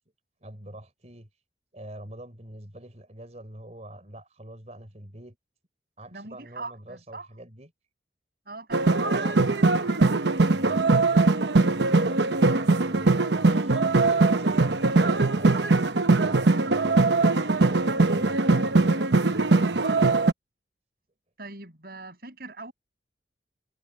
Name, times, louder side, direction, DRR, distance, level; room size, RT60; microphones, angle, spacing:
voice 1, 0.4-1.3 1.7-5.4 6.0-7.7 9.0-10.0 10.4-10.9 11.7-15.7 16.1-20.2, right 1 dB, 40° right, 4.0 m, -45 dB
voice 2, 6.1-7.3 8.5-9.1 21.4-22.7, right 3 dB, 60° right, 6.9 m, -41 dB
sound 1, 8.7-20.3, right 3 dB, 80° right, 1.0 m, -21 dB
head